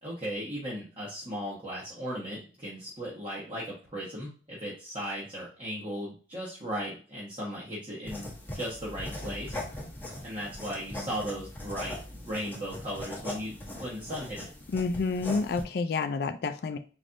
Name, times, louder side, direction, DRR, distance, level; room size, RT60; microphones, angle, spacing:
voice 1, 0.0-8.3 8.5-9.6 10.2-14.5, equal, 30° right, -6 dB, 1.2 m, -37 dB
sound 1, 8.1-15.6, left 1 dB, 10° left, 1.0 m, -40 dB
voice 2, 14.7-16.8, left 4 dB, 55° left, 7 dB, 0.3 m, -29 dB
4.1 x 3.4 x 2.6 m, 0.37 s
head